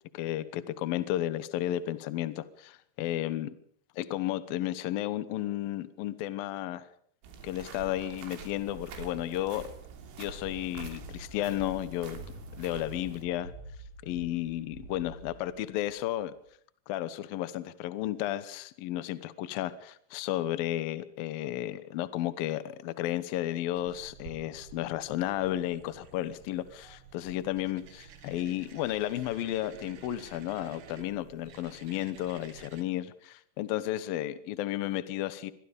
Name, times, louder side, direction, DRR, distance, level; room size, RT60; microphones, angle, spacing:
voice 1, 0.1-3.5 4.0-6.9 7.4-9.7 10.2-12.2 12.6-13.5 14.0-16.3 16.9-35.5, left 13 dB, 80° left, 14 dB, 2.1 m, -33 dB
sound 1, 7.2-13.2, right 6 dB, 90° right, 5.5 m, -47 dB
sound 2, 10.3-16.4, right 2 dB, 40° right, 4.8 m, -47 dB
sound 3, 23.7-32.8, right 6 dB, 55° right, 2.6 m, -51 dB
25.5 x 22.0 x 5.3 m, 0.62 s
omnidirectional pair, 5.8 m